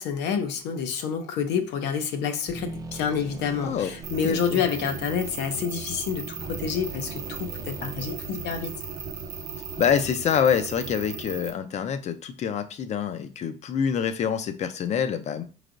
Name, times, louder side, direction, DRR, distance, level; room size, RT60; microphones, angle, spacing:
voice 1, 0.0-8.7, left 7 dB, 80° left, 0.6 m, -28 dB
sound 1, 2.5-10.4, right 4 dB, 20° right, 0.5 m, -41 dB
sound 2, 4.0-11.5, right 5 dB, 60° right, 0.7 m, -37 dB
voice 2, 4.2-4.6 9.8-15.4, left 8 dB, 40° left, 0.5 m, -26 dB
4.4 x 3.2 x 2.5 m
cardioid pair, 120°, 18 cm